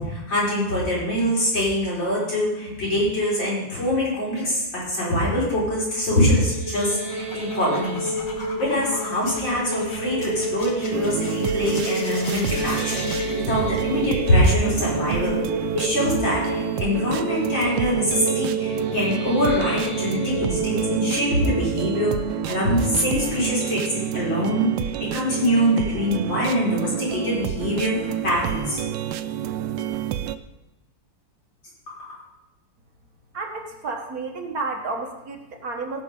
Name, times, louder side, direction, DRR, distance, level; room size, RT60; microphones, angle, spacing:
voice 1, 0.0-8.1 8.6-15.4 15.7-28.8 31.9-32.2, equal, 85° left, -7 dB, 5.6 m, -24 dB
sound 1, 6.5-23.4, right 1 dB, 30° right, 2.2 m, -30 dB
sound 2, 7.1-13.3, left 3 dB, 50° left, 1.8 m, -38 dB
sound 3, 10.9-30.4, right 11 dB, 80° right, 1.3 m, -29 dB
voice 2, 33.3-36.0, right 3 dB, 55° right, 2 dB, 1.7 m, -31 dB
17.0 x 5.9 x 5.4 m, 0.97 s
omnidirectional pair, 2.0 m